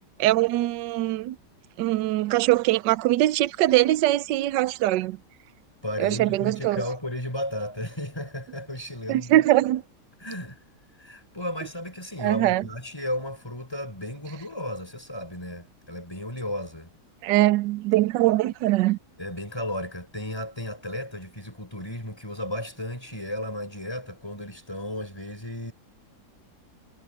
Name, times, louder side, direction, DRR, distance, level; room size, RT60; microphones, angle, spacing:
voice 1, 0.2-1.4 1.8-5.2 6.0-6.8 9.1-9.8 12.2-12.6 17.2-19.0, right 16 dB, 80° right, 1.2 m, -22 dB
voice 2, 5.8-9.5 10.2-10.6 11.0-16.9 19.2-25.7, left 1 dB, 15° left, 3.8 m, -34 dB
omnidirectional pair, 1.9 m